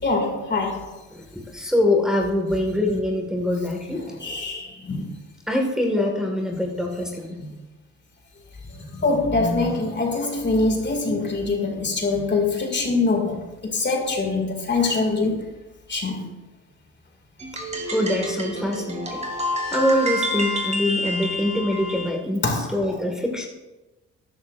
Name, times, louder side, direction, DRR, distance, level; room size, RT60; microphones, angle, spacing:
voice 1, 0.0-0.9 4.0-5.1 7.4-7.6 8.9-13.4 13.6-15.4 15.9-16.3 22.4-22.8, left 3 dB, 35° left, 2.4 m, -24 dB
voice 2, 1.1-4.0 5.5-7.4 14.1-14.2 17.9-19.2 19.7-22.4 22.7-23.5, left 1 dB, ahead, 1.8 m, -24 dB
sound 1, 17.4-22.1, left 1 dB, 20° right, 2.9 m, -28 dB
13.5 x 11.0 x 2.6 m
cardioid pair, 90°, 30 cm